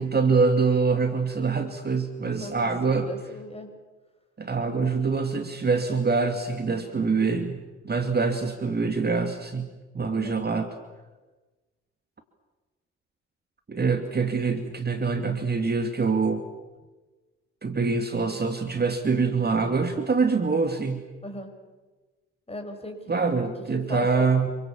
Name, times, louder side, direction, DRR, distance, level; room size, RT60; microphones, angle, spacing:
voice 1, 0.0-3.1 4.4-9.7 9.9-10.7 13.7-16.4 17.6-21.0 23.1-24.5, right 4 dB, 25° right, 7 dB, 2.5 m, -25 dB
voice 2, 2.2-2.7 3.1-3.7 10.1-10.4 21.2-21.5 22.5-23.0 23.7-24.3, left 1 dB, 15° left, 5 dB, 6.6 m, -38 dB
28.5 x 24.5 x 7.3 m, 1.2 s
figure-of-eight pair, 45°, 36 cm